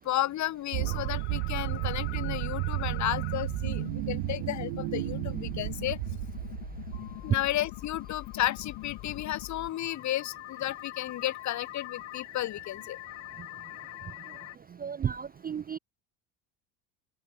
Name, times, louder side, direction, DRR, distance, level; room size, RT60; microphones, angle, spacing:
voice 1, 0.0-6.0 7.2-13.0, left 14 dB, 35° left, 0.6 m, -33 dB
sound 1, 0.7-7.5, right 40 dB or more, 80° right, 1.8 m, -33 dB
sound 2, 0.9-14.6, left 19 dB, 65° left, 2.5 m, -43 dB
voice 2, 14.8-15.8, right 8 dB, 20° right, 0.4 m, -33 dB
open air
supercardioid pair, 105°, 49 cm